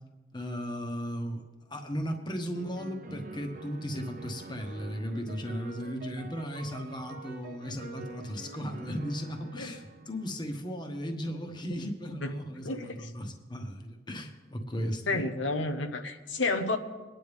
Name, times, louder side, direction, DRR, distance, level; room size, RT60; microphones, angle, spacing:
voice 1, 0.3-1.4 1.7-15.3, equal, 25° left, 4 dB, 1.3 m, -36 dB
sound 1, 2.5-10.3, right 3 dB, 50° right, 0.8 m, -46 dB
voice 2, 12.6-13.1 15.1-16.8, left 3 dB, 85° left, 5 dB, 1.0 m, -30 dB
23.0 x 9.8 x 3.5 m, 1.2 s
head